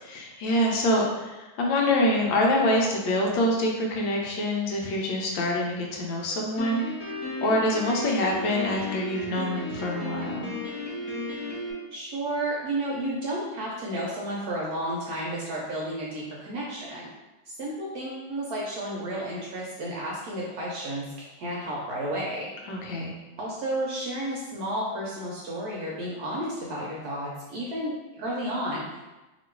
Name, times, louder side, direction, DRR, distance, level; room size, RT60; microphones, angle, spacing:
voice 1, 0.1-10.5 22.7-23.1, left 1 dB, 75° left, -1 dB, 1.4 m, -26 dB
Piano, 6.6-11.7, left 1 dB, 30° left, 0.5 m, -34 dB
voice 2, 11.9-17.1 17.5-21.1 21.4-22.5 23.4-29.0, right 1 dB, 65° right, -4 dB, 1.0 m, -32 dB
3.0 x 3.0 x 4.4 m, 1.1 s
omnidirectional pair, 2.2 m